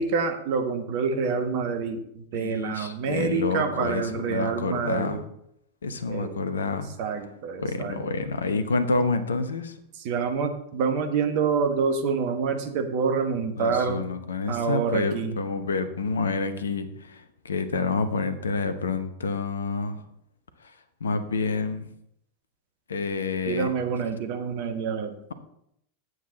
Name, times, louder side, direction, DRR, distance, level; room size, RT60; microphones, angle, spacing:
voice 1, 0.0-2.0 2.3-5.2 6.1-6.3 7.0-8.0 10.0-14.0 14.5-15.3 23.5-25.1, right 5 dB, 45° right, 6 dB, 1.3 m, -27 dB
voice 2, 2.3-5.2 5.8-7.3 7.6-9.7 13.5-20.0 20.6-20.7 21.0-21.9 22.9-23.7, left 4 dB, 70° left, 11 dB, 0.9 m, -28 dB
9.4 x 8.0 x 3.9 m, 0.74 s
figure-of-eight pair, 90°, 0 cm